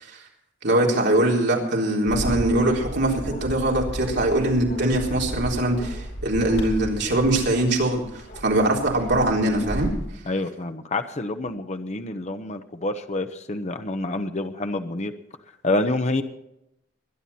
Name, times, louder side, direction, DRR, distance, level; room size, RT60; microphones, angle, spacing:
voice 1, 0.6-8.0 8.4-9.9, right 1 dB, 60° right, -1 dB, 3.9 m, -22 dB
Bark, 2.1-10.1, equal, 60° left, 5.4 m, -34 dB
voice 2, 10.3-15.1 15.6-16.2, left 2 dB, 35° left, 7 dB, 1.0 m, -27 dB
21.5 x 11.0 x 4.3 m, 0.83 s
head